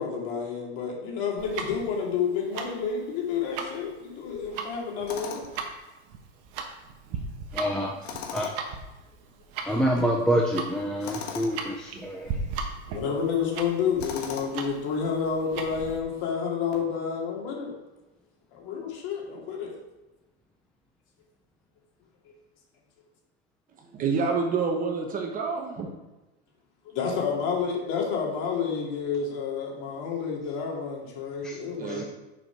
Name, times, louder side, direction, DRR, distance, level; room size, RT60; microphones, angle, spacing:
voice 1, 0.0-5.4 9.7-9.8 12.9-17.7 18.5-19.7 22.2-22.3 26.8-32.0, left 6 dB, 45° left, -2 dB, 2.8 m, -30 dB
Tick-tock, 1.4-16.0, right 5 dB, 45° right, 1.3 m, -37 dB
Tools, 5.1-5.6 8.0-8.7 11.0-11.6 14.0-14.7, left 7 dB, 65° left, 1.5 m, -37 dB
voice 2, 7.5-8.0 8.3-8.5 9.6-12.3 31.4-31.6 31.9-32.0, equal, ahead, -2 dB, 0.5 m, -27 dB
voice 3, 23.9-25.9 31.8-32.0, right 5 dB, 25° right, 2 dB, 1.1 m, -27 dB
7.1 x 5.1 x 6.0 m, 1.0 s
supercardioid pair, 135°, 34 cm